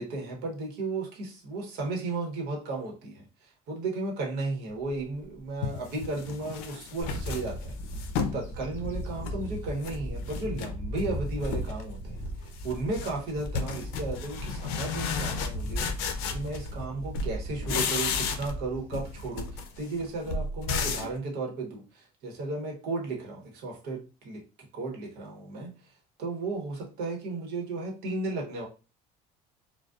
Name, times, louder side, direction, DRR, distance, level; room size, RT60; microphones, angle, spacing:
voice 1, 0.0-25.9 26.2-28.7, right 3 dB, 70° right, 0 dB, 1.0 m, -35 dB
sound 1, 5.0-5.1 5.6-8.4 8.8-10.0 10.3-11.1 11.4-11.9 12.2-16.9 17.1-18.7 18.9-21.2, left 5 dB, 85° left, 0.4 m, -33 dB
Bird / Wind, 7.0-19.8, equal, 15° left, 1.0 m, -37 dB
2.5 x 2.2 x 2.3 m, 0.32 s
cardioid pair, 120°, 17 cm